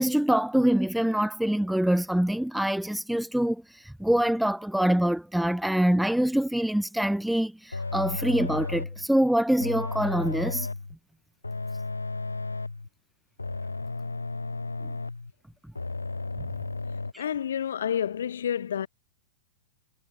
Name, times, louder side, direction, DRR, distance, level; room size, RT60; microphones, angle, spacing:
voice 1, 0.0-10.7, right 1 dB, ahead, 0.8 m, -25 dB
sound 1, 7.7-9.1 9.6-10.9 11.4-12.9 13.4-15.3 15.8-17.1, left 3 dB, 80° left, 2.2 m, -33 dB
voice 2, 17.2-18.9, left 9 dB, 60° left, 5.0 m, -29 dB
figure-of-eight pair, 100°, 0 cm